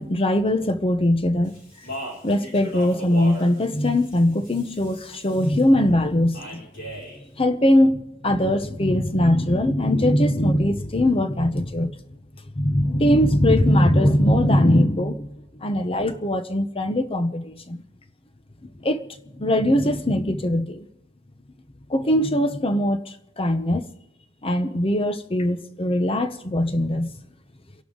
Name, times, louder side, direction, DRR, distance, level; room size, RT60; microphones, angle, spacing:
voice 1, 0.0-1.5 2.2-6.6 7.4-11.9 12.5-15.3 15.6-17.8 18.8-19.0 19.4-20.8 21.9-23.8 24.4-27.1, left 1 dB, 30° left, 1.0 m, -21 dB
Speech, 1.4-5.6 6.3-7.2, right 1 dB, 65° left, 6.0 m, -38 dB
29.5 x 11.5 x 3.9 m
head